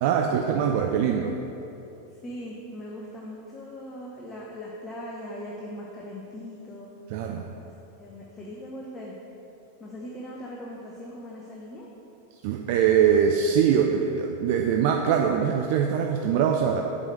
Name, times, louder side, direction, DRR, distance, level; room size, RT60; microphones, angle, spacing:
voice 1, 0.0-1.4 7.1-7.5 12.4-16.8, right 7 dB, 50° right, 3 dB, 0.5 m, -23 dB
voice 2, 2.2-6.9 7.6-7.7 8.0-9.1 9.8-11.9, left 1 dB, 20° left, -3 dB, 0.9 m, -40 dB
7.4 x 5.0 x 6.6 m, 3.0 s
figure-of-eight pair, 90°, 0 cm